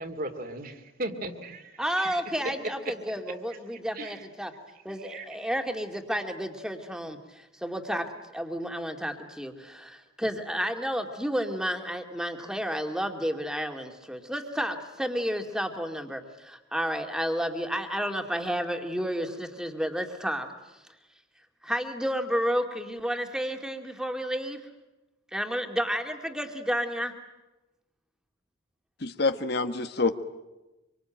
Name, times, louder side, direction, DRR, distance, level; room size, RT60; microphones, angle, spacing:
voice 1, 0.0-4.3 5.0-5.3 5.6-5.7, right 2 dB, 45° right, 7 dB, 2.4 m, -38 dB
voice 2, 1.8-4.5 4.8-8.1 8.3-20.5 21.6-24.6 25.3-27.1, equal, 5° right, 5 dB, 2.3 m, -31 dB
voice 3, 29.0-30.1, left 3 dB, 55° left, 9 dB, 1.3 m, -26 dB
26.0 x 24.5 x 9.0 m, 1.0 s
head